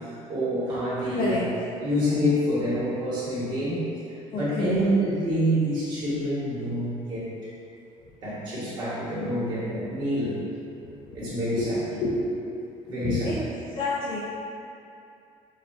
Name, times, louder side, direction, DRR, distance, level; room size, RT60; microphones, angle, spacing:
voice 1, 0.0-1.5 1.8-3.9 4.3-7.3 8.2-10.5 11.1-11.8 12.9-13.3, equal, 35° right, -9 dB, 1.4 m, -27 dB
voice 2, 1.1-1.5 4.3-4.9 8.0-8.1 10.8-11.7 12.0-12.1 13.0-13.4 13.8-14.2, left 3 dB, 40° left, -7 dB, 0.5 m, -29 dB
3.6 x 2.6 x 4.4 m, 2.6 s
cardioid pair, 170°, 12 cm